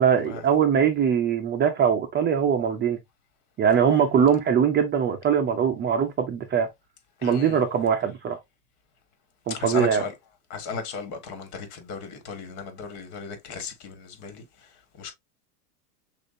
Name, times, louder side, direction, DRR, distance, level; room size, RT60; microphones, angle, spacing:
voice 1, 0.0-3.0 3.6-6.7 7.2-8.4 9.5-10.0, right 7 dB, 25° right, 0.5 m, -22 dB
voice 2, 7.2-7.6 9.5-10.1 10.5-14.4 15.0-15.1, left 5 dB, 50° left, 1.8 m, -35 dB
6.3 x 2.6 x 2.6 m
hypercardioid pair, 110°, 49 cm